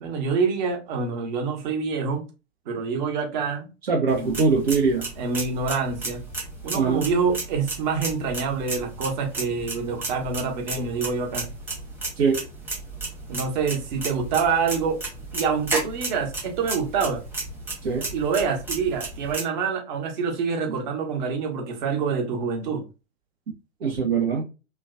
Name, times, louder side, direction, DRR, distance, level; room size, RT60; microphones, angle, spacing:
voice 1, 0.0-2.2 2.7-3.7 4.2-4.4 5.2-6.2 6.6-11.5 13.3-15.0 15.3-17.2 18.1-22.8, right 5 dB, 40° right, 1.0 m, -26 dB
voice 2, 3.9-5.1 6.7-7.0 12.2-12.4 17.8-18.1 23.8-24.4, right 5 dB, 60° right, 0.7 m, -22 dB
sound 1, 4.1-19.4, right 3 dB, 5° right, 0.8 m, -33 dB
3.0 x 2.2 x 2.5 m
figure-of-eight pair, 105°, 36 cm